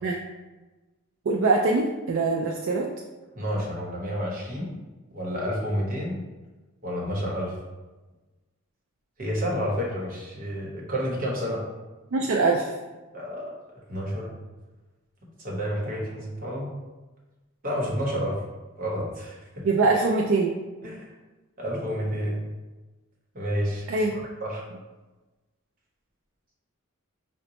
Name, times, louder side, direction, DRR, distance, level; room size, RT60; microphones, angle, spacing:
voice 1, 1.3-2.9 12.1-12.7 19.6-20.6 23.9-24.1, right 3 dB, 60° right, -1 dB, 0.3 m, -23 dB
voice 2, 3.3-4.7 5.1-6.2 6.8-7.5 9.2-11.6 13.1-13.5 13.9-14.3 15.4-16.7 17.6-18.4 18.8-19.7 20.8-21.1 21.6-22.4 23.3-24.6, equal, 40° right, -4 dB, 1.0 m, -30 dB
5.0 x 2.2 x 2.8 m, 1.2 s
head